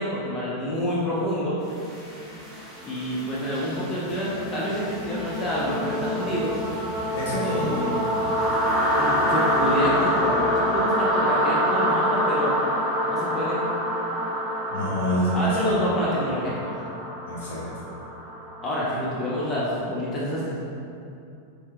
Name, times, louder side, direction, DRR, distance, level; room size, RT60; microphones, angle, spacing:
voice 1, 0.0-1.6 2.9-6.5 7.4-8.0 9.0-12.6 13.1-13.7 15.3-16.8 18.6-20.6, equal, 20° left, -7 dB, 0.6 m, -28 dB
sound 1, 1.7-19.5, equal, ahead, 1.3 m, -26 dB
voice 2, 7.1-7.9 14.7-15.8 17.3-17.9, equal, 60° left, -7 dB, 1.0 m, -27 dB
4.3 x 3.4 x 2.3 m, 2.7 s
figure-of-eight pair, 90°, 0 cm